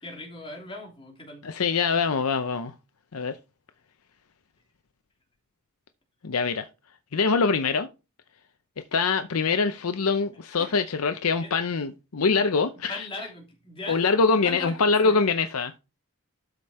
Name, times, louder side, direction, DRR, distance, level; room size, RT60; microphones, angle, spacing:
voice 1, 0.0-1.5 10.6-10.7 11.4-11.5 12.3-12.4 12.9-14.2 14.4-15.2, left 2 dB, 25° left, 3.1 m, -39 dB
voice 2, 1.4-2.7 3.1-3.4 6.2-6.7 7.1-7.9 8.9-13.1 13.9-15.7, left 4 dB, 85° left, 0.7 m, -24 dB
12.5 x 5.1 x 4.2 m
head